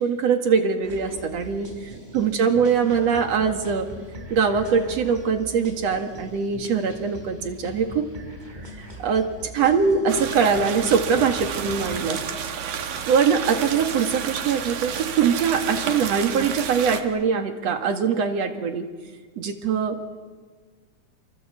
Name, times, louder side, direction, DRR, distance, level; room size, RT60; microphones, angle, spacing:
voice 1, 0.0-1.7 2.1-3.9 4.3-8.1 8.8-9.3 9.5-12.2 12.6-12.7 13.1-18.9 19.4-20.0, right 6 dB, 60° right, 5 dB, 2.9 m, -22 dB
sound 1, 0.8-12.0, equal, 15° right, 4.7 m, -40 dB
sound 2, 10.1-17.0, right 7 dB, 80° right, 3.0 m, -31 dB
29.0 x 24.0 x 8.1 m, 1.4 s
omnidirectional pair, 3.4 m